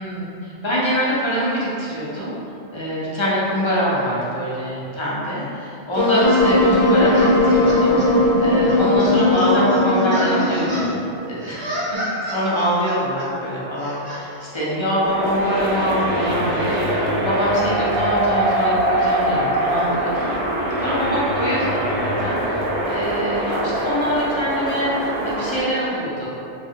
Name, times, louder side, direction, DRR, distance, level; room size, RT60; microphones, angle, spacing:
voice 1, 0.0-2.3 2.7-10.9 11.2-11.7 12.2-20.3 20.8-21.9 22.2-22.4 22.8-26.3, equal, 35° left, -8 dB, 0.5 m, -24 dB
Wind instrument woodwind instrument, 6.0-11.1, left 1 dB, 65° left, 0.9 m, -17 dB
sound 1, 7.1-8.1 8.7-10.9 11.4-13.3 13.8-14.2, equal, 30° right, 0.7 m, -30 dB
sound 2, 15.0-25.6, right 1 dB, 65° right, 0.7 m, -23 dB
3.1 x 2.3 x 2.7 m, 2.7 s
omnidirectional pair, 1.2 m